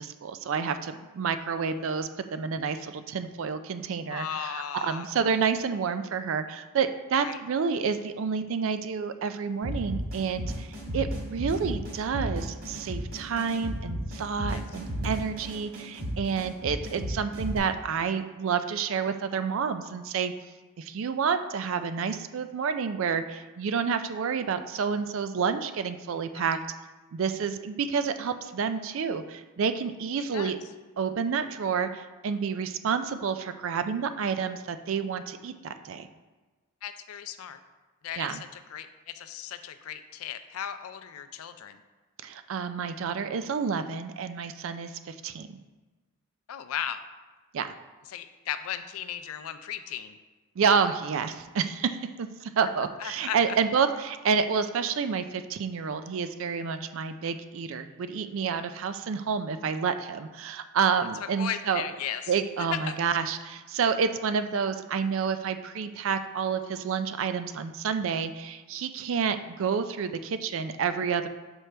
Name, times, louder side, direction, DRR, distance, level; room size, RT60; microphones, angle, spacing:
voice 1, 0.0-10.7 10.9-20.3 20.8-26.6 27.1-30.6 31.0-36.1 38.2-38.4 42.2-45.6 47.5-47.7 50.6-61.8 62.3-71.3, right 6 dB, 60° right, 10 dB, 0.4 m, -29 dB
voice 2, 4.1-5.1 7.2-7.4 14.5-14.6 26.3-26.6 30.3-30.5 36.8-37.6 38.0-41.8 46.5-47.0 48.1-50.2 52.6-52.7 53.0-53.4 61.4-62.3 62.9-63.0, left 9 dB, 75° left, 10 dB, 0.4 m, -36 dB
sound 1, 9.6-17.6, equal, 45° right, 1.5 m, -34 dB
6.4 x 4.5 x 3.3 m, 1.3 s
head